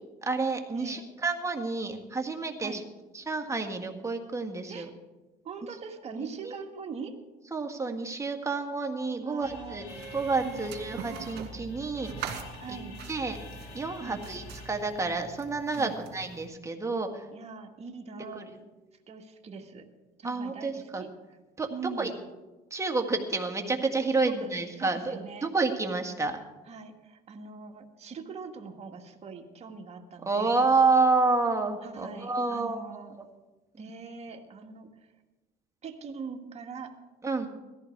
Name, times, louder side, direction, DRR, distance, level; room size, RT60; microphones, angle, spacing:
voice 1, 0.2-2.8 3.1-4.9 6.4-6.5 7.5-9.9 10.1-12.1 12.7-12.8 13.1-13.4 13.7-17.3 18.4-18.6 20.2-21.0 21.6-21.7 22.0-22.1 22.7-26.4 30.3-33.0 33.8-33.9 37.2-37.5, right 3 dB, 15° right, 3 dB, 1.9 m, -29 dB
voice 2, 5.4-7.2 9.2-9.9 10.4-10.7 12.6-13.0 14.0-14.2 15.8-16.0 17.3-18.5 19.1-19.9 20.2-21.1 21.7-22.2 24.1-25.5 26.7-30.7 31.8-33.2 33.8-35.1 35.8-37.0, right 5 dB, 40° right, 2 dB, 2.0 m, -42 dB
sound 1, 9.4-16.4, left 3 dB, 80° left, 2.2 m, -47 dB
sound 2, 9.9-16.5, right 7 dB, 75° right, 2.6 m, -43 dB
17.5 x 14.0 x 4.7 m, 1.1 s
cardioid pair, 110°, 17 cm